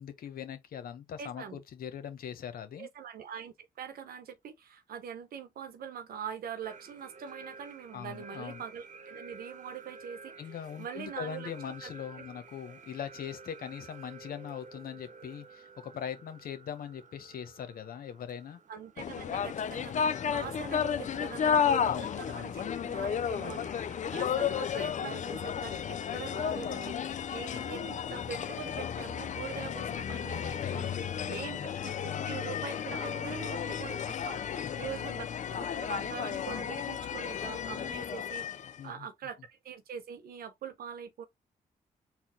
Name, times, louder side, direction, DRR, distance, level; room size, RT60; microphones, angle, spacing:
voice 1, 0.0-2.9 7.9-8.6 10.4-18.6 19.7-20.2 21.8-22.5 30.6-31.5 34.6-34.9 38.8-39.1, left 8 dB, 75° left, 0.9 m, -41 dB
voice 2, 1.2-1.6 2.8-11.9 18.7-30.9 31.3-31.9 32.3-35.2 35.5-41.2, right 7 dB, 80° right, 1.0 m, -43 dB
sound 1, 6.6-24.5, right 4 dB, 55° right, 0.8 m, -52 dB
sound 2, 19.0-38.8, left 7 dB, 55° left, 0.4 m, -33 dB
4.3 x 2.3 x 3.7 m
cardioid pair, 60°, 15 cm